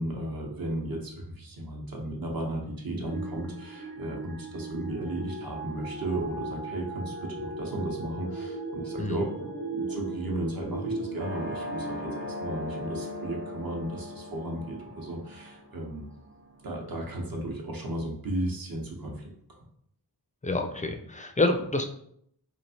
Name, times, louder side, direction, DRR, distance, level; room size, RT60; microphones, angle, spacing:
voice 1, 0.0-16.0 16.6-19.3, right 1 dB, 55° right, 0 dB, 0.8 m, -34 dB
sound 1, 3.1-16.1, right 2 dB, 80° right, 1.2 m, -42 dB
sound 2, 4.9-14.7 15.2-15.4, right 1 dB, 90° left, 0.7 m, -40 dB
sound 3, 11.2-16.8, left 1 dB, 25° right, 0.7 m, -40 dB
voice 2, 20.4-21.8, left 2 dB, 20° left, 5 dB, 0.3 m, -27 dB
3.1 x 2.4 x 2.7 m, 0.70 s
wide cardioid pair, 45°, 42 cm